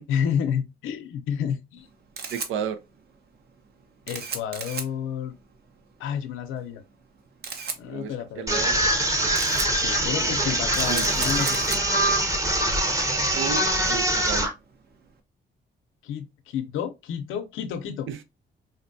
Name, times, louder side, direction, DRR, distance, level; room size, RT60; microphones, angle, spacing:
voice 1, 0.1-1.9 4.1-5.3 6.0-6.8 7.8-8.6 9.7-11.6 16.0-18.1, left 8 dB, 85° left, 0.6 m, -30 dB
Camera, 1.8-15.1, right 5 dB, 55° right, 0.7 m, -38 dB
voice 2, 2.3-2.8 7.9-8.8 10.2-10.6 10.9-11.0 13.3-14.5 18.1-18.2, right 7 dB, 85° right, 0.5 m, -33 dB
sound 1, 8.5-14.5, right 1 dB, 15° right, 0.8 m, -23 dB
3.9 x 2.2 x 2.6 m
cardioid pair, 90°, 20 cm